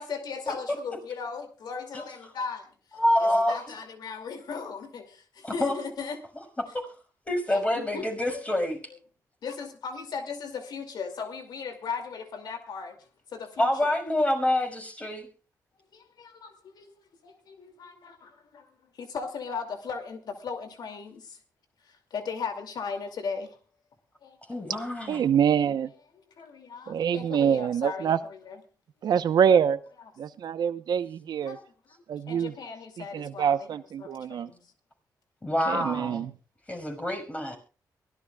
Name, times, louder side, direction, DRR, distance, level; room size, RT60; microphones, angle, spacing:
voice 1, 0.0-2.7 3.2-6.2 7.5-8.4 9.4-13.0 13.3-13.9 15.9-18.7 19.0-21.4 21.8-23.6 24.2-24.8 26.4-28.6 31.4-31.6 32.3-33.7 34.0-34.6, left 5 dB, 70° left, 2.5 m, -37 dB
voice 2, 3.0-3.6 5.4-5.7 6.7-6.8 7.3-8.8 13.6-15.3 24.5-25.2 35.4-36.2 36.7-37.6, left 1 dB, 20° left, 5.8 m, -26 dB
voice 3, 25.1-25.9 26.9-28.2 29.0-29.8 30.2-31.6 32.1-32.5 33.0-34.5 35.7-36.3, right 8 dB, 75° right, 0.9 m, -25 dB
23.0 x 16.5 x 2.4 m
cardioid pair, 85°, 7 cm